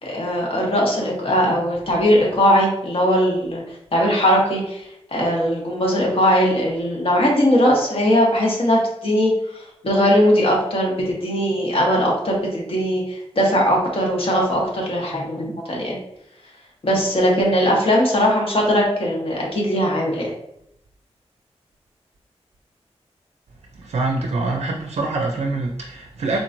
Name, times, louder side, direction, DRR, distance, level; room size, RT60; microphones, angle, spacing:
voice 1, 0.0-3.6 3.9-4.8 5.1-9.3 9.8-13.0 13.3-15.9 16.8-20.3, equal, 55° left, -2 dB, 1.0 m, -19 dB
voice 2, 23.7-26.4, right 3 dB, 75° right, 2 dB, 0.4 m, -25 dB
3.8 x 3.0 x 2.5 m, 0.77 s
wide cardioid pair, 95°, 11 cm